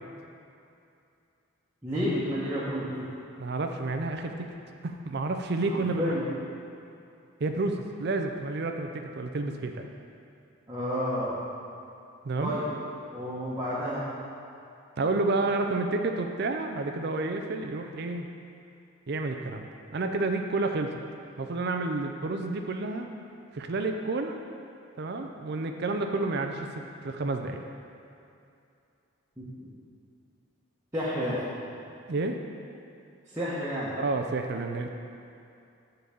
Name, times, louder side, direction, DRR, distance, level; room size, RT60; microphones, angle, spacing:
voice 1, 1.8-3.0 5.7-6.3 10.7-11.4 12.4-12.6 13.1-14.0 29.6-29.7 30.9-31.4 33.3-33.9, equal, 15° right, -11 dB, 1.1 m, -30 dB
voice 2, 3.4-4.5 4.8-6.1 7.4-9.9 12.2-12.5 15.0-18.3 19.1-21.0 21.4-23.1 23.5-24.4 25.0-26.7 27.0-27.6 32.1-32.4 34.0-34.9, right 3 dB, 50° right, 5 dB, 0.4 m, -30 dB
8.3 x 3.9 x 7.0 m, 2.6 s
head